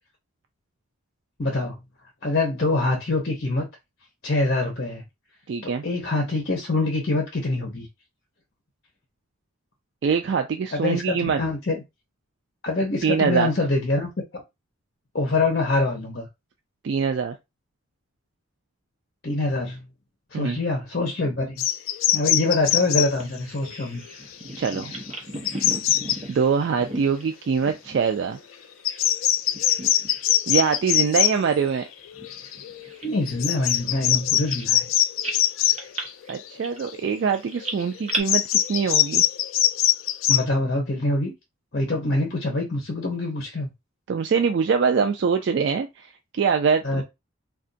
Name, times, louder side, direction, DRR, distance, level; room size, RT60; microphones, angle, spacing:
voice 1, 1.4-1.8 2.2-3.7 4.2-5.0 5.6-7.9 10.7-11.8 12.6-14.4 15.1-16.3 19.2-19.9 20.3-21.6 22.1-24.0 33.0-34.9 40.3-41.3 41.7-43.7 46.8-47.0, left 2 dB, 50° left, 0.8 m, -25 dB
voice 2, 5.5-5.8 10.0-11.4 13.0-13.5 16.8-17.3 20.3-20.6 24.6-24.9 26.3-28.4 30.5-31.8 36.3-39.2 44.1-47.0, right 6 dB, 60° right, 0.3 m, -23 dB
sound 1, 21.6-23.2 23.6-23.8 24.1-24.2 24.6-25.1 25.4-26.2 27.5-27.6 28.1-28.2 28.8-31.4 32.1-33.0 33.3-36.4 36.8-37.3 37.6-40.4, left 12 dB, 75° left, 0.3 m, -23 dB
Bird vocalization bird call bird song, 23.2-29.2 29.4-30.4 30.7-30.9 31.5-34.9 35.2-38.2, right 2 dB, 35° right, 0.8 m, -37 dB
2.5 x 2.3 x 3.8 m
head